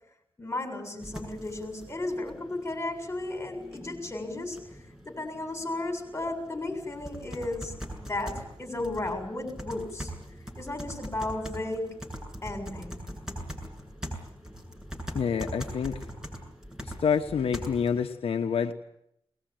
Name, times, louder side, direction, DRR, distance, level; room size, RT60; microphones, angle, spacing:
voice 1, 0.4-4.6 5.0-10.1 10.6-11.9 12.4-13.0, left 2 dB, 25° left, 5 dB, 7.1 m, -34 dB
sound 1, 1.0-18.0, equal, 5° right, 7.4 m, -42 dB
voice 2, 15.1-16.0 16.8-18.7, left 7 dB, 85° left, 5 dB, 1.2 m, -27 dB
22.0 x 20.0 x 9.2 m, 0.78 s
cardioid pair, 75°, 10 cm